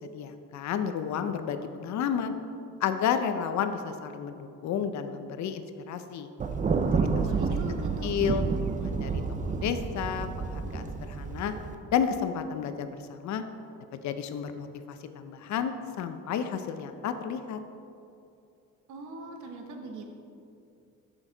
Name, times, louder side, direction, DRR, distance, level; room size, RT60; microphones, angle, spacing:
voice 1, 0.0-2.4 2.8-6.3 7.1-7.3 8.0-9.2 9.6-11.5 11.9-13.4 13.9-17.6, left 7 dB, 70° left, 9 dB, 0.6 m, -31 dB
Thunder, 6.4-11.7, right 4 dB, 25° right, 0.4 m, -29 dB
voice 2, 7.2-8.1 18.9-20.1, right 3 dB, 75° right, 3 dB, 1.0 m, -41 dB
6.3 x 6.0 x 3.9 m, 2.6 s
cardioid pair, 90°, 30 cm